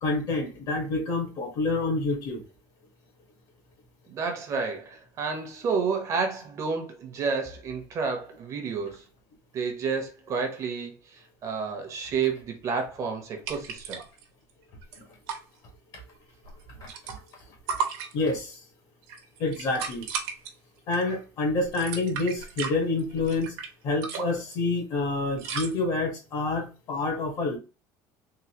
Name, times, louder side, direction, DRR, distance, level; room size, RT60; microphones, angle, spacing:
voice 1, 0.0-2.4 15.0-15.1 15.9-16.0 16.8-16.9 18.1-18.6 19.4-20.0 20.9-23.5 23.8-27.6, left 3 dB, 50° left, 1.5 m, -28 dB
voice 2, 4.1-9.0 9.5-14.0, right 5 dB, 35° right, 0.9 m, -30 dB
sound 1, 13.5-14.2 14.5-14.6 14.8-15.4 16.4-17.4 17.7-18.5 19.0-20.5 20.9-21.2 21.6-23.7 24.0-24.5 25.4-25.7, right 6 dB, 75° right, 1.1 m, -34 dB
3.8 x 2.7 x 2.9 m
cardioid pair, 155°, 9 cm